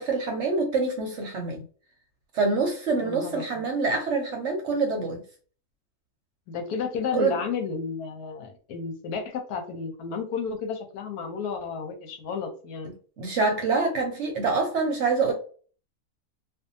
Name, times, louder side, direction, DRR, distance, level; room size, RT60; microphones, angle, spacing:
voice 1, 0.0-1.6 2.3-5.2 7.1-7.4 13.2-15.3, right 4 dB, 60° right, 0.9 m, -26 dB
voice 2, 2.9-3.6 6.5-12.9, left 5 dB, 80° left, 1.2 m, -32 dB
2.6 x 2.4 x 2.6 m
omnidirectional pair, 1.6 m